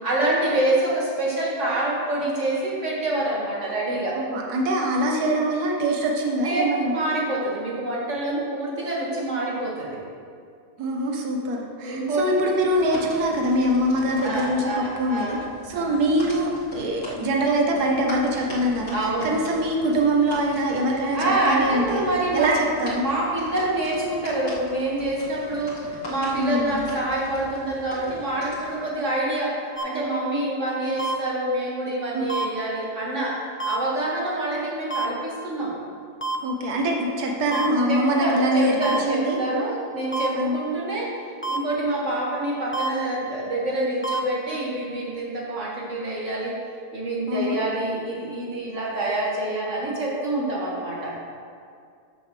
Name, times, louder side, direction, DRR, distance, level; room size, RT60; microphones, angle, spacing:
voice 1, 0.0-4.2 6.4-10.0 11.8-12.6 14.2-15.4 15.7-16.0 18.9-19.4 21.1-35.7 37.5-41.1 41.5-46.6 46.9-51.2, right 1 dB, 50° right, -4 dB, 2.3 m, -26 dB
voice 2, 4.1-7.0 10.8-15.4 15.7-18.9 19.2-22.0 22.3-23.0 26.3-26.8 32.1-32.2 36.4-38.8 39.1-39.4 40.4-40.6 47.3-47.6, right 1 dB, 75° right, 0 dB, 1.6 m, -23 dB
sound 1, 12.7-28.8, left 1 dB, 90° left, 2.9 m, -41 dB
sound 2, 29.8-29.9 31.0-31.1 32.3-32.4 33.6-33.8 34.9-35.0 36.2-36.4 37.5-37.7 38.8-39.0 40.1-40.3 41.4-41.6 42.7-42.9 44.0-44.2, right 4 dB, 10° left, 0.6 m, -26 dB
14.0 x 6.9 x 3.3 m, 2.3 s
omnidirectional pair, 1.7 m